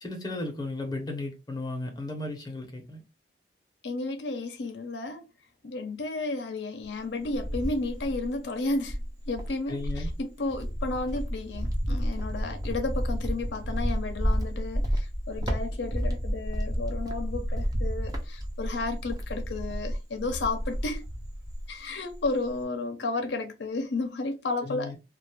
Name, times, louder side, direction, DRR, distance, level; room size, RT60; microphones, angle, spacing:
voice 1, 0.0-3.0 9.7-10.1 24.6-25.0, left 2 dB, 25° left, 0.7 m, -35 dB
voice 2, 3.8-5.3 5.6-21.0 21.7-24.9, left 3 dB, 75° left, 0.6 m, -32 dB
Cricket, 6.8-8.4 8.8-21.8 22.1-22.6, equal, 20° right, 0.5 m, -31 dB
2.5 x 2.2 x 3.2 m
head